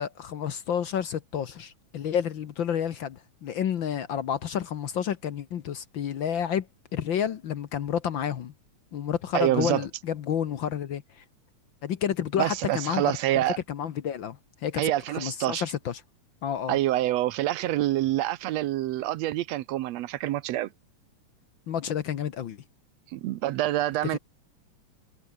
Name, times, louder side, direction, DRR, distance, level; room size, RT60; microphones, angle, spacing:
voice 1, 0.0-6.7 6.9-8.5 8.9-11.2 11.8-13.2 13.7-14.8 15.1-16.0 16.4-16.8 21.7-22.6 24.1-24.2, left 9 dB, 65° left, 1.2 m, -30 dB
voice 2, 9.3-9.8 12.4-13.6 14.8-15.6 16.7-20.7 23.1-24.2, right 14 dB, 70° right, 1.7 m, -26 dB
omnidirectional pair, 3.5 m